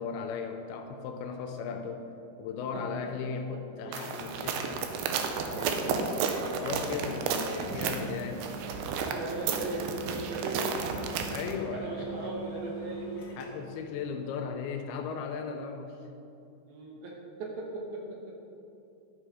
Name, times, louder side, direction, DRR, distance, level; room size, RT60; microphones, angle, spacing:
voice 1, 0.0-2.1 2.4-5.0 5.5-5.7 6.6-8.4 11.3-12.1 13.4-16.0, left 6 dB, 80° left, 5 dB, 2.5 m, -37 dB
voice 2, 3.5-4.1 5.4-6.0 8.8-11.2 11.5-13.1 16.7-18.4, right 2 dB, 70° right, -1 dB, 2.9 m, -38 dB
sound 1, 3.9-11.6, right 5 dB, 90° right, 2.9 m, -32 dB
sound 2, 6.2-6.9 7.2-7.3 7.5-13.8, right 3 dB, 55° left, 1.8 m, -45 dB
12.0 x 6.1 x 4.9 m, 2.7 s
omnidirectional pair, 4.7 m